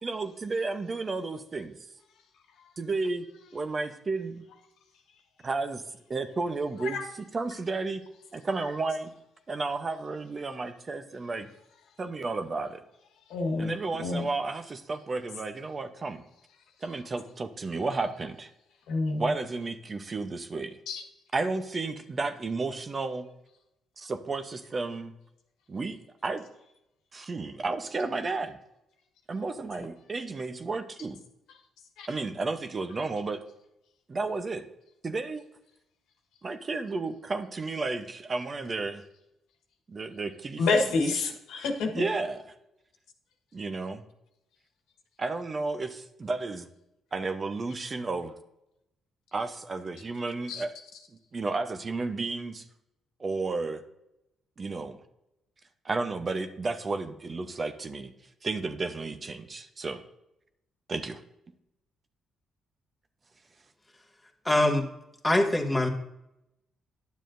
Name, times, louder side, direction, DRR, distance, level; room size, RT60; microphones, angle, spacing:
voice 1, 0.0-1.8 2.8-3.2 3.5-4.4 5.4-5.8 6.1-7.0 7.3-8.0 8.3-9.1 9.5-11.5 12.0-12.8 13.6-16.2 16.8-18.5 19.2-20.7 21.3-23.3 24.0-25.1 25.7-26.4 27.1-28.6 29.3-31.2 32.1-33.4 34.1-34.6 35.0-35.4 36.4-39.0 39.9-40.9 41.9-42.4 43.5-44.0 45.2-46.7 47.1-48.3 49.3-50.7 51.3-52.6 53.2-53.8 54.6-55.0 55.8-58.1 58.4-60.0 60.9-61.2, right 3 dB, 35° right, 9 dB, 0.7 m, -32 dB
voice 2, 13.3-13.7 14.0-14.3 18.9-19.3 20.9-21.0 32.0-32.1 40.6-41.9 50.5-50.6, left 3 dB, 85° left, 3 dB, 1.4 m, -28 dB
voice 3, 64.5-64.8 65.2-65.9, left 1 dB, 10° left, 3 dB, 1.2 m, -23 dB
10.0 x 7.2 x 2.6 m, 0.85 s
cardioid pair, 90°, 0 cm